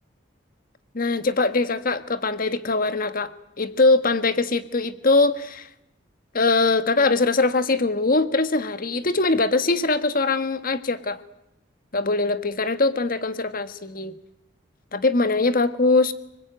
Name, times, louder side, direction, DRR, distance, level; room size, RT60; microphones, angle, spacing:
voice 1, 0.9-5.7 6.3-11.2 11.9-14.2 14.9-16.1, left 3 dB, 50° left, 11 dB, 1.6 m, -22 dB
29.5 x 20.5 x 9.2 m, 0.86 s
head